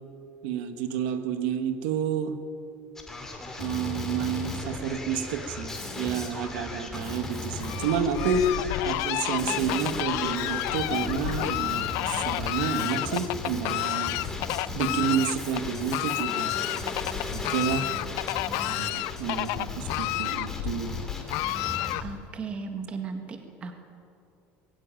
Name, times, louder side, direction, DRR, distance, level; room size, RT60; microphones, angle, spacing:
voice 1, 0.4-2.4 3.6-14.3 14.7-16.6 17.3-17.9 18.6-21.1, right 6 dB, 90° right, 7 dB, 1.9 m, -30 dB
Male speech man speaking, 3.0-22.0, left 2 dB, 10° left, 2.5 m, -37 dB
Fowl, 7.6-22.3, left 17 dB, 60° left, 0.6 m, -31 dB
voice 2, 22.0-23.7, right 5 dB, 20° right, 5 dB, 1.8 m, -36 dB
20.5 x 16.5 x 9.2 m, 2.5 s
cardioid pair, 175°, 5 cm